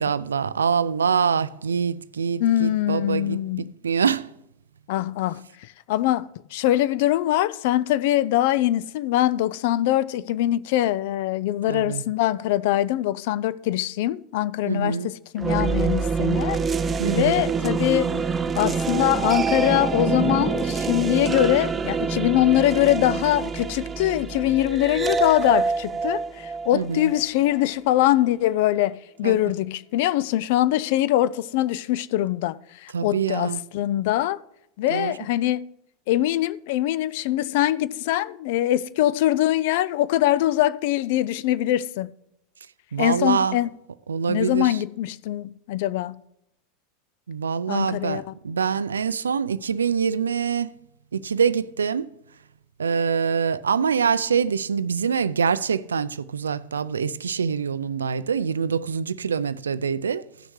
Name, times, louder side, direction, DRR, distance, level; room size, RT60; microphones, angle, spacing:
voice 1, 0.0-4.3 11.7-12.0 14.6-15.1 17.0-17.4 26.7-27.1 29.2-29.4 32.9-33.6 34.9-35.1 42.9-43.6 44.1-44.8 47.3-50.8 51.1-52.1 52.8-60.2, right 6 dB, 90° right, 0.4 m, -25 dB
voice 2, 2.4-3.7 4.9-16.6 17.1-18.2 18.6-34.4 34.8-35.7 36.1-42.1 43.0-43.7 44.3-46.2 47.7-48.3, left 14 dB, 65° left, 0.4 m, -23 dB
sound 1, 15.4-27.5, right 5 dB, 25° right, 0.5 m, -26 dB
15.0 x 6.5 x 3.2 m
hypercardioid pair, 90°, 0 cm